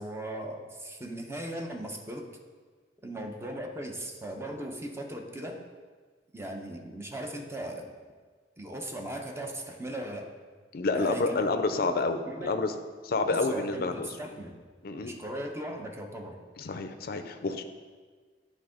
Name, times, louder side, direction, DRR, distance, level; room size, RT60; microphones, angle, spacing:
voice 1, 0.0-2.3 3.0-5.6 6.3-7.9 8.6-10.3 10.9-11.4 11.8-12.0 12.3-12.6 13.1-14.6 14.9-16.3, right 1 dB, 15° right, 3 dB, 0.7 m, -38 dB
voice 2, 10.7-12.7 13.0-14.1 14.8-15.1 16.6-17.6, left 3 dB, 55° left, 8 dB, 0.5 m, -29 dB
10.0 x 3.7 x 4.9 m, 1.5 s
head